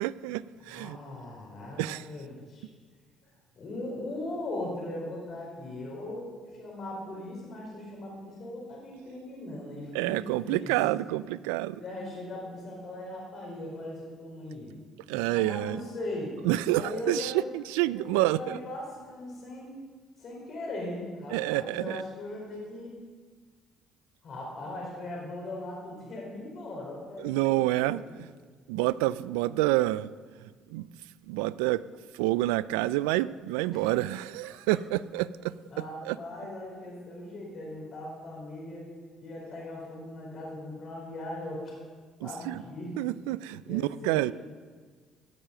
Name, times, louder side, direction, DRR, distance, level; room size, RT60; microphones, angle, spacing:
voice 1, 0.0-1.0 1.8-2.1 9.9-11.8 15.1-15.8 16.4-18.6 21.3-22.0 27.2-28.3 28.7-30.1 30.7-30.9 31.3-31.8 32.1-35.5 36.0-36.2 42.2-42.6 43.0-44.3, right 16 dB, 85° right, 18 dB, 0.3 m, -28 dB
voice 2, 0.7-2.6 3.6-6.3 6.6-10.7 11.7-14.7 15.2-16.3 16.7-17.4 17.9-19.7 20.2-23.0 24.2-28.0 33.7-34.1 35.7-38.9 39.2-41.7 42.2-43.0 43.6-44.3, left 1 dB, 55° left, -3 dB, 4.5 m, -39 dB
16.5 x 7.1 x 6.7 m, 1.5 s
hypercardioid pair, 60°, 0 cm